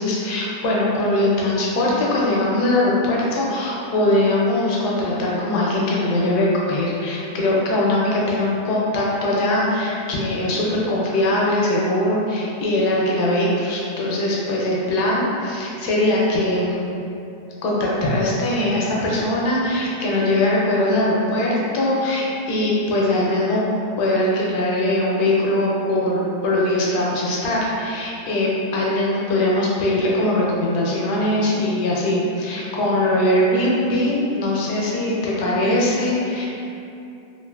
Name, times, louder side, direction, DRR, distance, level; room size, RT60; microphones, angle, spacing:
voice 1, 0.0-16.9 17.6-23.6 24.0-36.5, left 1 dB, 70° left, -5 dB, 1.0 m, -21 dB
3.0 x 2.4 x 2.2 m, 2.6 s
omnidirectional pair, 1.9 m